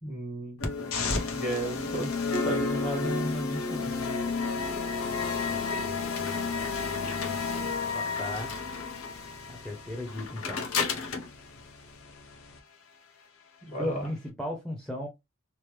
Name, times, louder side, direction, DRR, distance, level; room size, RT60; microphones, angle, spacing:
voice 1, 0.0-0.7 1.3-2.1 2.4-3.9 13.6-14.1, right 1 dB, 35° left, 1.5 m, -34 dB
sound 1, 0.6-12.6, left 4 dB, 85° left, 0.7 m, -31 dB
voice 2, 7.9-8.5 9.5-10.7 13.8-15.1, left 1 dB, 5° left, 0.5 m, -35 dB
3.0 x 2.0 x 3.1 m
head